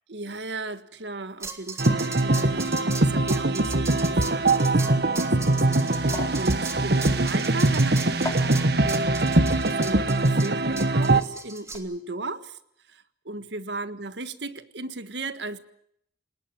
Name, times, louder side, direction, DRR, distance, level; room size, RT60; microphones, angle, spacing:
voice 1, 0.1-9.3 9.7-12.6 12.9-15.6, right 2 dB, 85° right, 1.6 m, -36 dB
sound 1, 1.4-11.8, right 4 dB, 15° right, 2.3 m, -38 dB
sound 2, 1.8-11.2, right 2 dB, 65° right, 1.4 m, -22 dB
sound 3, 5.1-11.2 11.5-11.8, left 2 dB, 20° left, 3.5 m, -41 dB
29.5 x 19.5 x 7.7 m
head